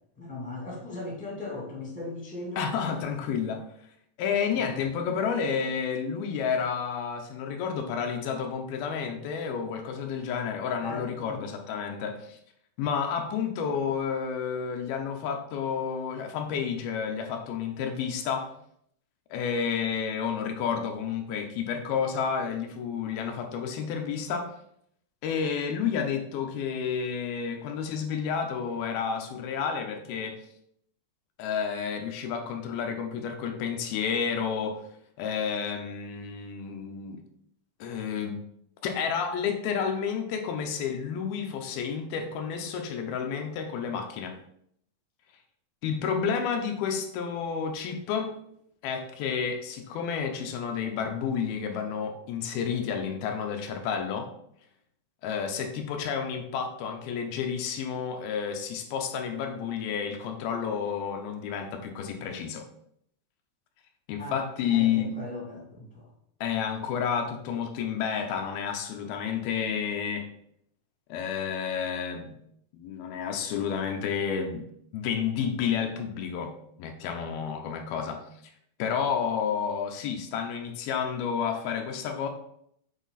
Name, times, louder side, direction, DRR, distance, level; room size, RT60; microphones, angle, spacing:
voice 1, 0.2-2.9 10.8-11.4 64.2-64.4 64.7-66.0, left 2 dB, 5° left, -5 dB, 1.8 m, -38 dB
voice 2, 2.6-3.7 4.2-12.4 12.8-18.5 19.3-24.5 25.2-30.4 31.4-34.9 35.2-37.2 37.8-38.4 38.8-44.4 45.8-48.3 48.8-54.3 55.2-62.7 64.1-65.1 66.4-70.3 71.1-72.4 72.7-74.7 74.9-78.2 78.8-82.3, left 7 dB, 85° left, 4 dB, 2.8 m, -30 dB
8.2 x 4.5 x 4.1 m, 0.70 s
omnidirectional pair, 4.3 m